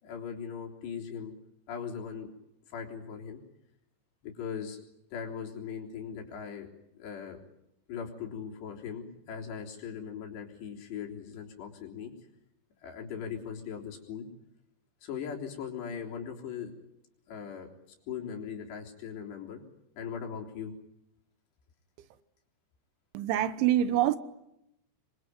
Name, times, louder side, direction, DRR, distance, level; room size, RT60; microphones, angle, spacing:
voice 1, 0.0-1.3 1.7-2.3 2.7-3.4 4.2-4.8 5.1-6.7 7.0-7.4 7.9-12.1 12.8-14.3 15.0-16.7 17.3-17.7 18.1-19.6 20.0-20.7, left 7 dB, 65° left, 5.7 m, -39 dB
voice 2, 23.2-24.2, right 12 dB, 85° right, 3.6 m, -25 dB
27.0 x 23.5 x 9.4 m
omnidirectional pair, 5.3 m